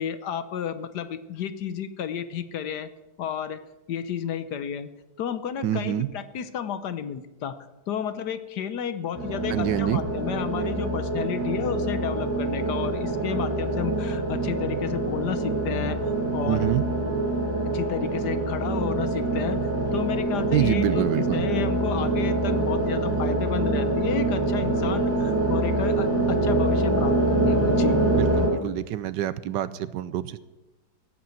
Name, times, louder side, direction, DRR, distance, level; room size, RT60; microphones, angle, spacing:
voice 1, 0.0-2.9 3.2-3.6 3.9-4.9 5.2-7.6 7.9-16.0 16.3-16.7 17.7-28.0, left 8 dB, 65° left, 12 dB, 1.3 m, -32 dB
voice 2, 5.6-6.1 9.5-10.0 16.5-16.9 20.5-21.4 28.2-30.4, right 12 dB, 75° right, 16 dB, 1.2 m, -26 dB
sound 1, 9.1-28.5, right 2 dB, 5° right, 4.0 m, -25 dB
15.5 x 8.5 x 7.8 m, 1.1 s
omnidirectional pair, 2.0 m